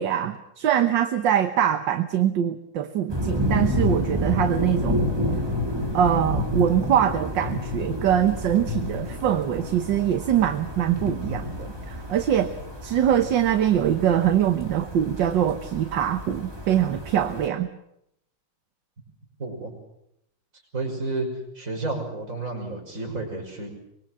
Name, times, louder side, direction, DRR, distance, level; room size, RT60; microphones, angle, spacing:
voice 1, 0.0-5.0 5.9-12.5 12.8-17.7, right 10 dB, 65° right, 8 dB, 1.7 m, -23 dB
sound 1, 3.1-17.5, left 1 dB, 10° right, 2.8 m, -30 dB
voice 2, 19.4-19.7 20.7-21.3 21.5-23.8, right 3 dB, 35° right, 1 dB, 6.2 m, -31 dB
25.0 x 21.5 x 7.6 m, 0.78 s
omnidirectional pair, 2.3 m